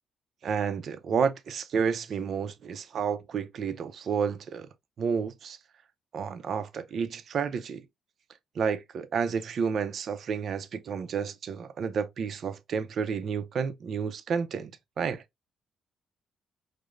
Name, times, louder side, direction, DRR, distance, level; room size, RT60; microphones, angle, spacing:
voice 1, 0.4-4.7 5.0-5.6 6.1-7.8 8.6-15.2, right 6 dB, 60° right, 0.5 m, -30 dB
4.8 x 2.0 x 2.5 m
cardioid pair, 90°, 0 cm